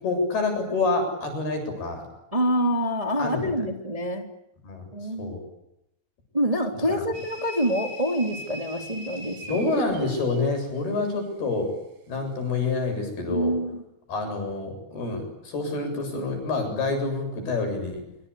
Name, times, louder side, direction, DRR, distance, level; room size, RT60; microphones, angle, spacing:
voice 1, 0.0-2.0 3.2-3.5 4.6-4.9 5.2-5.4 6.9-7.0 9.5-11.7 12.1-13.5 14.1-18.0, left 3 dB, 75° left, 5 dB, 9.5 m, -27 dB
voice 2, 2.3-4.3 4.9-5.3 6.3-9.6 13.3-13.8, equal, 10° right, 3 dB, 2.7 m, -26 dB
sound 1, 7.1-10.5, equal, 75° right, 6.2 m, -41 dB
26.5 x 26.0 x 8.5 m, 0.82 s
omnidirectional pair, 4.5 m